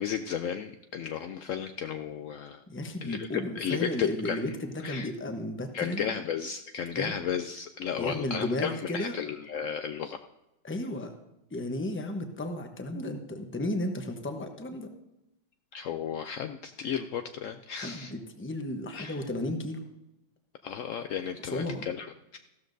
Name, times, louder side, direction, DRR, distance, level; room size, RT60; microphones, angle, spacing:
voice 1, 0.0-2.6 3.0-4.5 4.8-5.1 5.7-10.2 15.7-18.1 18.9-19.2 20.6-22.4, left 8 dB, 90° left, 7 dB, 0.6 m, -34 dB
voice 2, 2.7-6.2 7.0-7.1 8.0-9.2 10.6-11.1 11.5-14.9 17.8-19.8 21.5-21.9, left 1 dB, 10° left, 5 dB, 0.6 m, -34 dB
14.5 x 12.5 x 2.6 m, 0.93 s
omnidirectional pair, 1.9 m